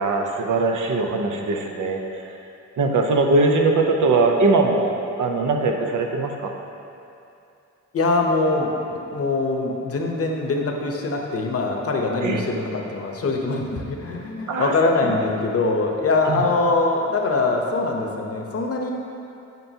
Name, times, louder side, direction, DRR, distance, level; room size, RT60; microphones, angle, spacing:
voice 1, 0.0-2.4 2.8-6.5 12.2-12.4 14.5-14.7 16.2-16.4, right 3 dB, 90° right, 2 dB, 0.7 m, -21 dB
voice 2, 7.9-18.9, left 3 dB, 50° left, 1 dB, 0.8 m, -23 dB
9.1 x 5.7 x 2.8 m, 2.7 s
wide cardioid pair, 110°, 30 cm